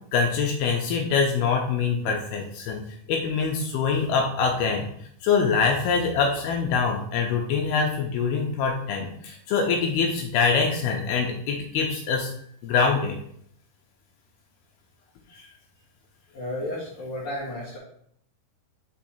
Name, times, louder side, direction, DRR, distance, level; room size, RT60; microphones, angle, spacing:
voice 1, 0.1-2.8 3.1-4.9 5.2-12.3 12.6-13.2 15.3-15.5, left 5 dB, 85° left, 1 dB, 2.6 m, -24 dB
voice 2, 16.3-17.8, left 1 dB, 45° left, -9 dB, 1.8 m, -32 dB
6.0 x 3.7 x 5.8 m, 0.67 s
omnidirectional pair, 4.5 m